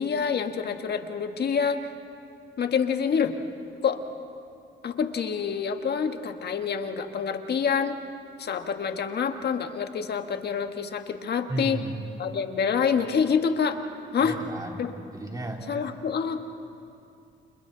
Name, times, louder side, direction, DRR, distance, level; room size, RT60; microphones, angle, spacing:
voice 1, 0.0-1.8 2.6-3.3 3.8-4.0 4.8-8.0 8.4-11.8 12.2-13.8 14.1-14.4 14.8-14.9 15.7-16.5, left 6 dB, 55° left, 6 dB, 1.6 m, -27 dB
voice 2, 11.5-11.9 14.2-15.6, right 2 dB, 20° right, 1 dB, 3.1 m, -34 dB
30.0 x 28.5 x 4.0 m, 2.6 s
cardioid pair, 90°, 20 cm